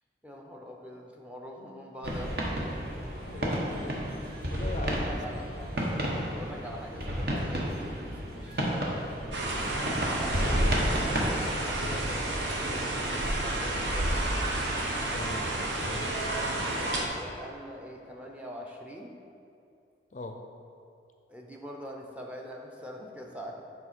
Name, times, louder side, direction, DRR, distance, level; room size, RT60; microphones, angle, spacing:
voice 1, 0.2-2.7 4.8-5.8 6.3-9.1 9.4-10.7 10.9-14.5 16.9-19.1 21.3-23.6, equal, 10° right, 0 dB, 0.6 m, -44 dB
sound 1, 2.0-11.4, equal, 55° right, 1.0 m, -31 dB
voice 2, 3.1-4.1 4.4-5.4 15.1-15.5 15.8-16.2 20.1-20.4, left 2 dB, 40° left, 4 dB, 0.4 m, -40 dB
sound 2, 9.3-17.1, right 1 dB, 90° right, 0.9 m, -30 dB
7.0 x 5.1 x 4.3 m, 2.7 s
head